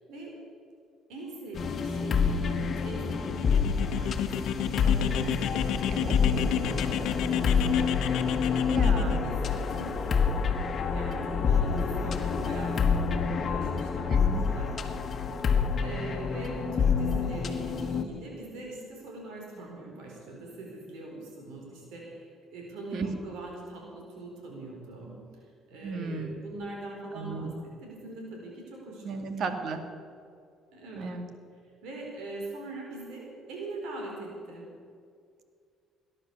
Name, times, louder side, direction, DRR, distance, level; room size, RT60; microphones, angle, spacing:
voice 1, 1.1-8.2 8.9-10.1 10.9-14.7 15.8-25.1 25.4-29.2 29.8-29.9 30.7-31.1 31.8-34.7, right 2 dB, 85° right, -1 dB, 4.3 m, -42 dB
sound 1, 1.5-18.0, left 5 dB, 40° left, 1.4 m, -27 dB
sound 2, 3.1-9.2, left 9 dB, 80° left, 1.0 m, -32 dB
voice 2, 8.5-9.2 14.1-14.4 22.9-23.1 25.8-26.4 27.1-27.6 29.0-29.9 31.0-31.3, right 4 dB, 60° right, 7 dB, 1.9 m, -34 dB
18.0 x 11.0 x 7.0 m, 2.3 s
cardioid pair, 105°, 0 cm